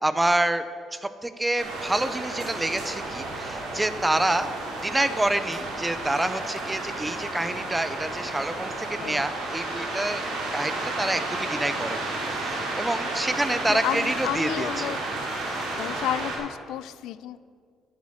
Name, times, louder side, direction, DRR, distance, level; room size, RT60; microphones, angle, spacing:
voice 1, 0.0-0.6 0.9-4.5 4.8-10.2 10.5-12.0 12.3-15.0, right 1 dB, 10° right, 12 dB, 0.4 m, -27 dB
sound 1, 1.6-16.4, right 2 dB, 90° right, 2.6 m, -32 dB
voice 2, 13.7-17.4, left 12 dB, 85° left, 16 dB, 0.3 m, -32 dB
10.5 x 7.3 x 6.2 m, 2.1 s
cardioid pair, 155°, 0 cm